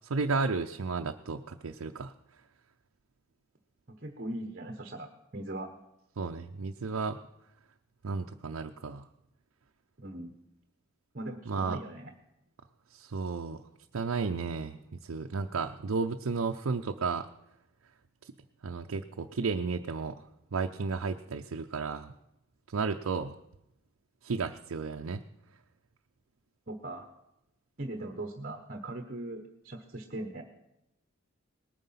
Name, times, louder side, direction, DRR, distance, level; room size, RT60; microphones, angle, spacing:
voice 1, 0.0-2.1 6.2-7.2 8.0-9.1 11.5-11.8 12.9-13.6 13.9-17.3 18.2-18.3 18.6-20.2 20.5-22.1 22.7-23.4 24.2-25.2, right 4 dB, 85° right, 4 dB, 0.6 m, -33 dB
voice 2, 3.9-5.7 10.0-10.3 11.1-12.1 26.7-27.1 27.8-30.4, right 1 dB, 45° right, 5 dB, 1.1 m, -40 dB
19.5 x 9.2 x 5.7 m, 0.87 s
head